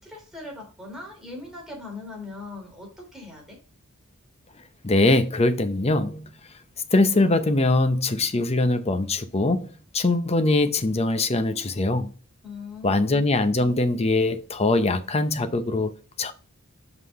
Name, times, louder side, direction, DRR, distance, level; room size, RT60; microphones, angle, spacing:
voice 1, 0.0-3.6 12.4-13.1, left 3 dB, ahead, 3.2 m, -40 dB
voice 2, 4.8-6.3 6.9-9.7 9.9-12.1 12.8-16.3, left 2 dB, 30° left, 0.7 m, -22 dB
5.9 x 5.7 x 4.7 m
head